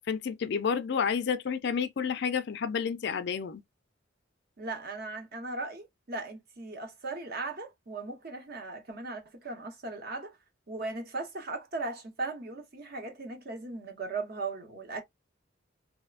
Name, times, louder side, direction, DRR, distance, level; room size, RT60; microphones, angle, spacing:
voice 1, 0.1-3.6, left 6 dB, 60° left, 0.4 m, -30 dB
voice 2, 4.6-10.4 10.7-15.0, right 3 dB, 50° right, 0.8 m, -38 dB
3.0 x 2.1 x 2.3 m
head